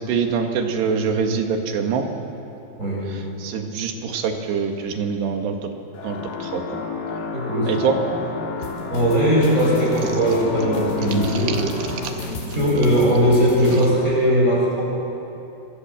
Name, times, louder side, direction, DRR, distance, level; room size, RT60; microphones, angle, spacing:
voice 1, 0.0-2.1 3.1-5.7 6.0-6.8 7.1-7.2 7.7-8.0 11.1-11.6 11.9-12.1, right 6 dB, 85° right, 4 dB, 4.0 m, -25 dB
voice 2, 2.8-3.1 7.3-7.7 8.9-11.5 12.5-14.8, equal, 15° right, -4 dB, 8.3 m, -19 dB
sound 1, 5.9-12.1, left 5 dB, 70° left, 4.0 m, -30 dB
sound 2, 8.6-13.9, left 1 dB, 85° left, 6.0 m, -32 dB
26.5 x 23.0 x 7.6 m, 2.9 s
omnidirectional pair, 4.7 m